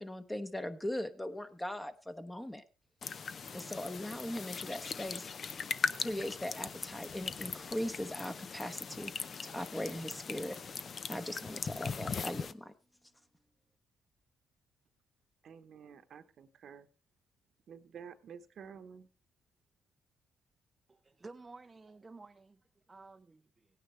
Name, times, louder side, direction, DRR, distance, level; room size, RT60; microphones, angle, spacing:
voice 1, 0.0-2.6 3.5-5.3 6.0-9.1 9.4-10.6 11.1-12.7, left 1 dB, 10° left, 1.0 m, -39 dB
sound 1, 3.0-12.5, left 6 dB, 50° left, 0.6 m, -40 dB
voice 2, 15.4-16.9 17.7-19.1, right 7 dB, 60° right, 1.0 m, -51 dB
voice 3, 20.9-22.6 22.9-23.7, right 3 dB, 25° right, 0.5 m, -53 dB
16.5 x 9.5 x 3.3 m
cardioid pair, 90°, 0 cm